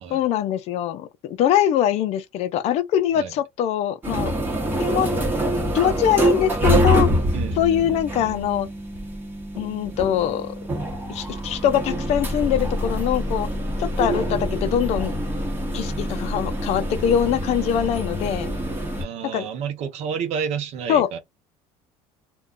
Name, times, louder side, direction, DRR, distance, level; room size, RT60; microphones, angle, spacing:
voice 1, 0.1-4.3 4.8-5.1 5.7-7.1 7.5-8.7 9.5-10.5 11.1-13.5 13.8-15.1 15.7-18.5 19.3-19.5 20.9-21.1, left 10 dB, 55° left, 0.4 m, -23 dB
sound 1, 4.0-19.0, equal, 15° right, 1.0 m, -25 dB
voice 2, 7.3-8.0 19.0-21.2, right 7 dB, 60° right, 0.6 m, -30 dB
2.3 x 2.2 x 3.6 m
cardioid pair, 120°, 13 cm